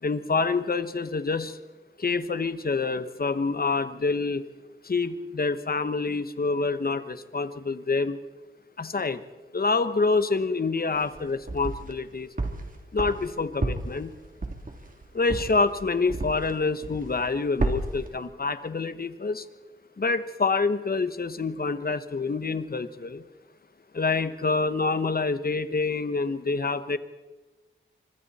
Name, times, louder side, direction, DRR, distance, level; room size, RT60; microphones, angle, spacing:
voice 1, 0.0-1.6 2.0-4.4 4.8-8.2 8.8-9.2 9.5-12.3 12.9-14.1 15.1-19.4 20.0-23.2 23.9-27.0, left 4 dB, 50° left, 12 dB, 1.3 m, -27 dB
sound 1, 11.0-12.0 12.4-16.6 16.8-17.3 17.6-18.1, right 2 dB, 40° right, 3.0 m, -31 dB
25.5 x 24.0 x 4.3 m, 1.2 s
cardioid pair, 60°, 20 cm